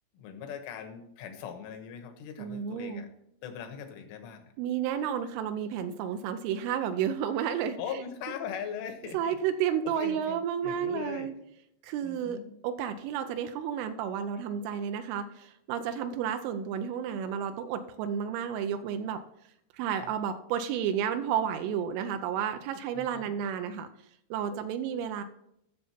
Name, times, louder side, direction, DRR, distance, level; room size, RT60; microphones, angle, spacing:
voice 1, 0.1-3.1 3.4-4.5 7.8-9.4 9.9-11.3 12.0-12.5 20.0-20.1 23.0-23.3, left 7 dB, 80° left, 6 dB, 3.6 m, -40 dB
voice 2, 2.4-3.1 4.6-7.8 9.1-11.3 11.8-12.4 12.6-19.2 19.8-23.9 24.3-25.2, right 8 dB, 85° right, 8 dB, 3.1 m, -31 dB
12.5 x 6.7 x 4.3 m, 0.76 s
omnidirectional pair, 5.7 m